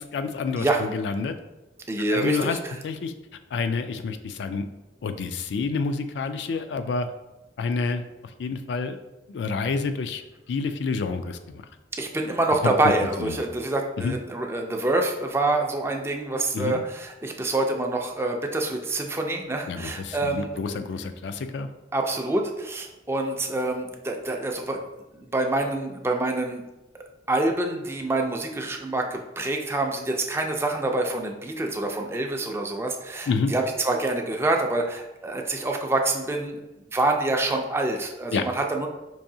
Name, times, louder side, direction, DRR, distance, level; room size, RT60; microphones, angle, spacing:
voice 1, 0.0-1.4 2.1-2.6 2.8-3.1 3.5-4.6 5.0-7.1 7.6-8.0 8.4-9.0 9.3-10.2 10.5-11.7 12.6-12.7 13.2-13.4 14.0-14.2 16.5-16.8 19.7-21.7 33.3-33.5 38.3-38.4, left 4 dB, 75° left, 9 dB, 0.3 m, -28 dB
voice 2, 1.9-2.8 11.9-20.8 21.9-24.9 25.1-26.6 27.3-36.6 36.9-38.9, right 2 dB, 15° right, 2 dB, 0.3 m, -26 dB
4.6 x 2.6 x 2.7 m, 1.0 s
head